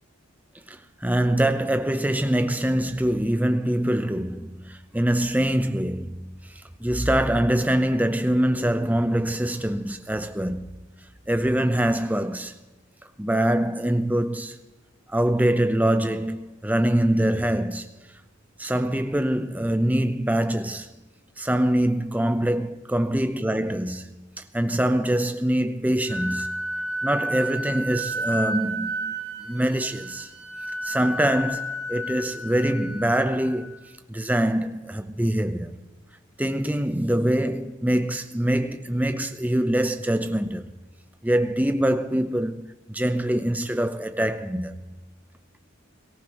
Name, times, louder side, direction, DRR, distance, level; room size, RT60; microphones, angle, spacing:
voice 1, 0.7-6.3 6.8-10.7 11.3-12.5 13.2-14.6 15.1-17.9 18.6-20.9 21.4-26.5 27.0-29.2 29.5-30.3 30.8-33.8 34.1-35.8 36.4-40.7 41.2-44.7, right 1 dB, 5° right, 0.6 m, -24 dB
Wind instrument woodwind instrument, 26.1-33.8, right 1 dB, 15° left, 6.1 m, -32 dB
22.5 x 14.5 x 3.0 m
head